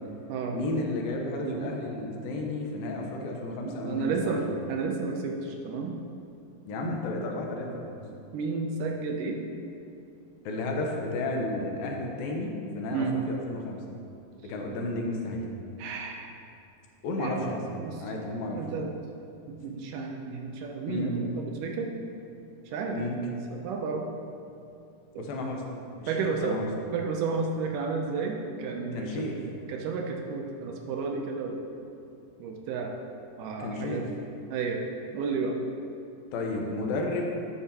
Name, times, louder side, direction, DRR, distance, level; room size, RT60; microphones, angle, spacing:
voice 1, 0.5-4.4 6.7-8.0 10.4-13.8 14.4-15.4 17.0-17.6 18.0-18.6 20.9-21.2 22.9-23.2 25.2-26.7 28.9-29.4 33.6-34.1 36.3-37.4, left 2 dB, 85° left, 1 dB, 2.7 m, -32 dB
voice 2, 3.6-6.0 6.8-7.0 8.1-9.4 12.9-13.2 15.8-16.3 17.2-17.5 17.8-18.1 18.5-18.9 19.5-21.9 22.7-23.0 23.5-24.1 25.1-25.3 26.1-26.6 26.9-29.1 29.7-31.7 32.4-32.9 33.4-34.1 34.5-34.8 35.1-35.6, right 4 dB, 75° right, 2 dB, 2.1 m, -32 dB
12.0 x 8.4 x 2.9 m, 2.5 s
omnidirectional pair, 4.1 m